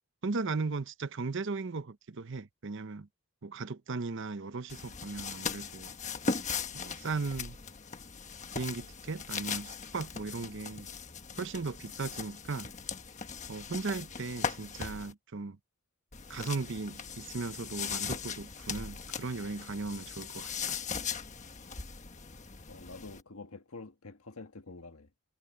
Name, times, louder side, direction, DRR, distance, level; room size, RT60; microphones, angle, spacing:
voice 1, 0.2-3.1 3.4-5.9 6.7-7.6 8.5-10.9 11.4-12.7 13.5-15.6 16.3-20.8, right 4 dB, 55° right, 0.7 m, -37 dB
sound 1, 4.7-15.1 16.1-23.2, left 5 dB, 35° left, 1.3 m, -39 dB
voice 2, 22.7-25.1, left 3 dB, 80° left, 1.6 m, -47 dB
head